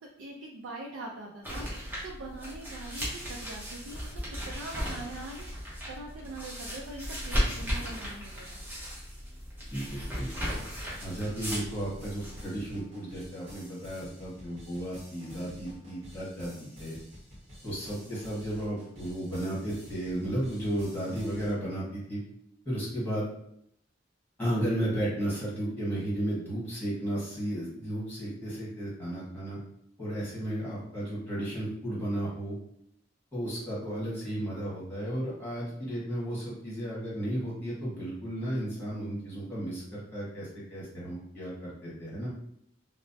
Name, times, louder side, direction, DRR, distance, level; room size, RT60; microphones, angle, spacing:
voice 1, 0.0-5.5 5.9-8.7, right 2 dB, 80° right, -1 dB, 0.4 m, -43 dB
sound 1, 1.4-12.4, equal, 10° right, 0.8 m, -36 dB
voice 2, 9.7-10.3 11.0-16.9 17.6-22.2 22.6-23.3 24.4-29.6 30.0-32.6 33.3-42.3, right 1 dB, 10° left, -8 dB, 1.4 m, -34 dB
sound 2, 9.8-21.5, equal, 35° right, 1.3 m, -50 dB
3.1 x 2.0 x 2.6 m, 0.71 s
head